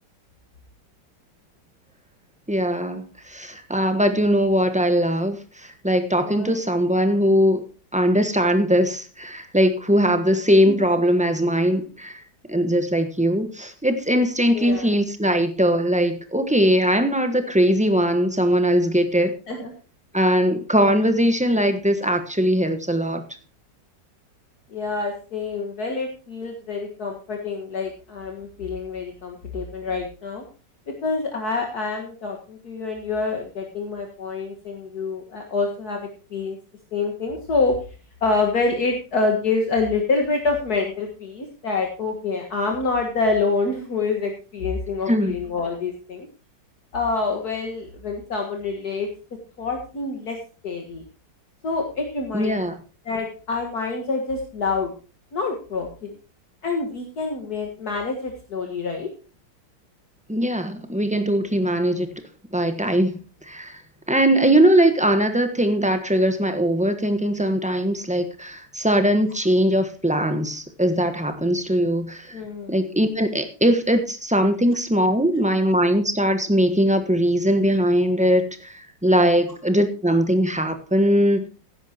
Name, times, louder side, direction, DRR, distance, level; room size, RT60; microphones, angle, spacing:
voice 1, 2.5-7.6 7.9-12.2 12.5-19.4 20.1-23.2 45.1-45.3 52.3-52.8 60.3-62.1 62.5-63.8 64.1-72.4 72.7-81.5, equal, 5° right, 8 dB, 1.1 m, -20 dB
voice 2, 6.2-6.5 10.7-10.8 14.5-14.9 19.5-19.7 24.7-30.5 30.9-36.6 36.9-37.8 38.2-46.3 46.9-49.1 49.6-50.4 50.6-51.0 51.6-52.6 53.1-54.9 55.3-56.1 56.6-59.1 72.3-72.7, left 3 dB, 60° left, 2 dB, 2.1 m, -26 dB
15.5 x 10.5 x 2.9 m, 0.35 s
omnidirectional pair, 1.9 m